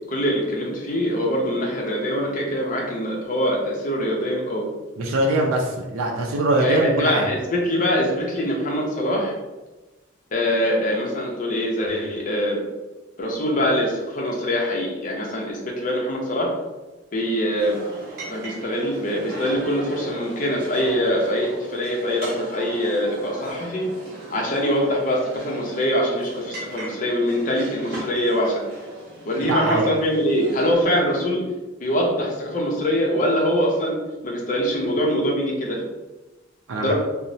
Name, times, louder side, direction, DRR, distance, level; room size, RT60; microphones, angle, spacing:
voice 1, 0.1-4.7 6.6-9.3 10.3-12.6 13.2-16.5 17.1-17.8 18.3-23.9 24.3-28.6 29.3-31.4 31.8-35.8 36.8-36.9, equal, 40° left, -1 dB, 0.5 m, -23 dB
voice 2, 5.0-7.3 29.5-29.9 36.7-36.9, right 1 dB, 85° right, 0 dB, 0.4 m, -22 dB
sound 1, 17.6-30.7, right 1 dB, 50° right, 0.8 m, -38 dB
2.9 x 2.0 x 2.6 m, 1.1 s
head